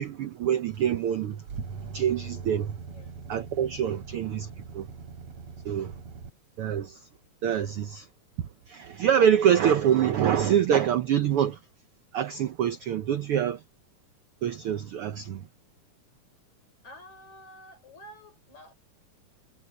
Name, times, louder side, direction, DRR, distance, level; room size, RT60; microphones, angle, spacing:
voice 1, 0.0-1.4 1.9-2.7 3.3-4.5 4.7-4.8 5.6-5.9 6.6-7.0 7.4-8.1 8.7-11.6 12.1-13.6 14.4-15.4, right 9 dB, 75° right, 1.3 m, -25 dB
sound 1, 0.7-6.3, right 5 dB, 55° right, 3.9 m, -41 dB
voice 2, 2.8-3.2 16.8-18.7, equal, 60° left, 7.3 m, -49 dB
omnidirectional pair, 3.6 m